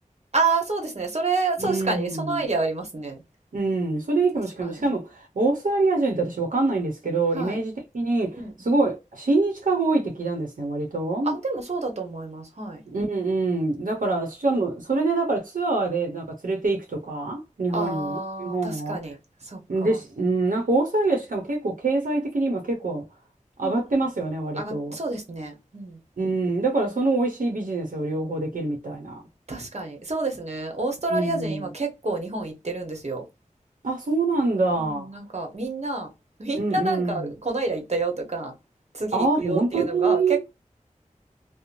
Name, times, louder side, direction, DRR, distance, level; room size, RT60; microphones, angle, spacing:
voice 1, 0.3-3.2 4.6-4.8 7.3-7.6 8.3-8.5 11.2-12.8 17.7-20.0 23.6-23.8 24.5-26.0 29.5-33.2 34.7-36.1 36.4-38.6 38.9-40.5, right 3 dB, 55° right, 0.9 m, -29 dB
voice 2, 1.6-2.4 3.5-11.4 12.9-19.0 19.7-23.0 23.6-24.9 26.2-29.2 31.1-31.6 33.8-35.1 36.5-37.3 39.1-40.4, right 3 dB, 80° right, 0.7 m, -25 dB
3.0 x 2.0 x 2.4 m
wide cardioid pair, 40°, 14 cm